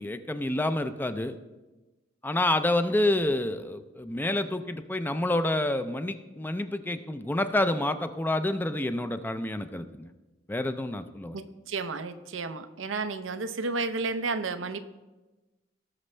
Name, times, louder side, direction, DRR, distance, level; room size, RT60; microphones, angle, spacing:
voice 1, 0.0-1.3 2.2-10.1 10.5-11.4, left 1 dB, 10° left, 10 dB, 0.4 m, -28 dB
voice 2, 11.3-14.8, right 3 dB, 90° right, 9 dB, 0.7 m, -32 dB
18.0 x 6.2 x 3.3 m, 1.1 s
head